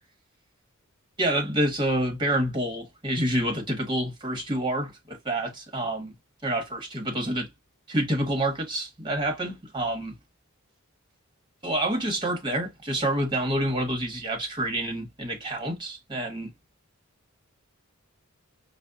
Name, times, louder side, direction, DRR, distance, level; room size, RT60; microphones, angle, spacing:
voice 1, 1.2-6.1 6.4-7.5 7.9-10.1 11.6-16.5, right 1 dB, 20° right, 1.3 m, -28 dB
5.1 x 2.1 x 2.4 m
head